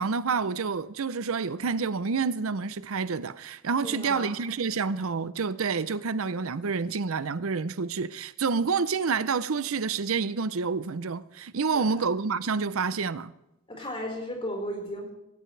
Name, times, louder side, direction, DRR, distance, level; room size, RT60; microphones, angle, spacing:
voice 1, 0.0-13.3, right 5 dB, 90° right, 0.7 m, -28 dB
voice 2, 3.8-4.3 11.7-11.9 13.7-15.1, equal, 25° left, 4.7 m, -35 dB
17.0 x 17.0 x 3.3 m
head